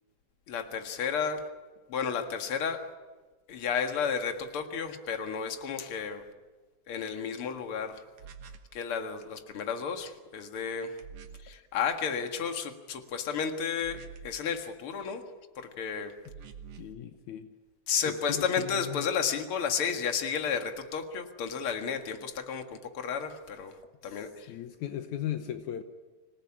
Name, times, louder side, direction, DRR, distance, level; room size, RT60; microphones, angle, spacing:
voice 1, 0.5-1.5 1.9-2.9 3.5-6.2 6.9-8.0 8.7-11.0 11.4-15.2 15.6-16.2 17.9-23.7 24.0-24.5, left 6 dB, 50° left, 6 dB, 2.5 m, -32 dB
sound 1, 8.2-8.8 11.0-11.6 13.8-14.5 16.2-17.0, right 6 dB, 60° right, 2.1 m, -47 dB
voice 2, 16.8-17.5 18.1-19.1 24.0-24.2 24.5-25.8, left 11 dB, 75° left, 8 dB, 2.3 m, -37 dB
27.0 x 18.5 x 10.0 m, 1.3 s
omnidirectional pair, 3.5 m